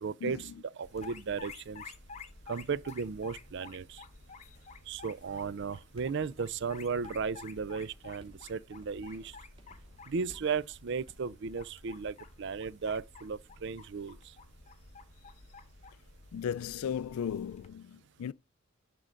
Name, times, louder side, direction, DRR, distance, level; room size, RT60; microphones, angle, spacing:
voice 1, 0.0-1.8 2.5-4.0 4.9-9.3 10.1-14.2, right 5 dB, 55° right, 0.4 m, -35 dB
sound 1, 0.8-17.7, left 4 dB, 30° left, 0.9 m, -51 dB
sound 2, 6.0-11.3, equal, 25° right, 2.7 m, -61 dB
voice 2, 16.3-18.3, left 8 dB, 85° left, 0.3 m, -36 dB
10.5 x 3.8 x 5.1 m
head